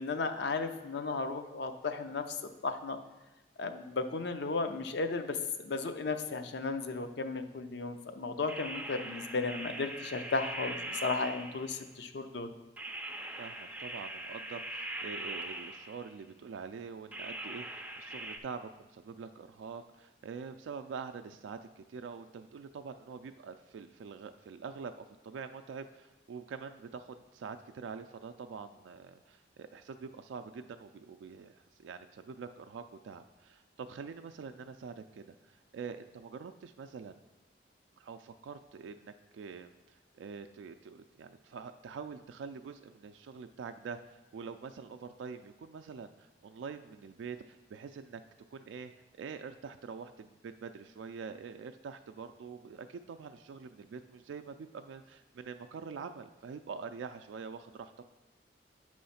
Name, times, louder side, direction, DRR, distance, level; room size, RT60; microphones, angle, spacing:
voice 1, 0.0-3.0 3.6-12.5, left 3 dB, 65° left, 8 dB, 0.5 m, -35 dB
sound 1, 8.5-11.9 12.8-16.2 17.1-18.4, right 2 dB, 5° right, 0.4 m, -41 dB
voice 2, 13.4-37.2 38.0-48.2 48.5-58.0, right 5 dB, 85° right, 7 dB, 0.3 m, -45 dB
8.5 x 3.1 x 5.6 m, 1.0 s
head